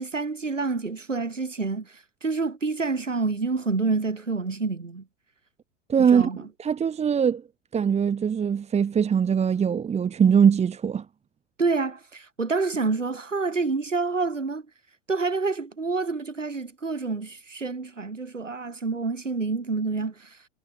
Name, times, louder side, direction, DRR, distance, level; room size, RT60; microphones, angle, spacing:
voice 1, 0.0-5.0 6.0-6.4 11.6-14.6 15.1-20.4, right 4 dB, 90° right, 1.7 m, -28 dB
voice 2, 5.9-7.4 7.7-11.0, right 7 dB, 20° right, 1.1 m, -22 dB
figure-of-eight pair, 85°, 36 cm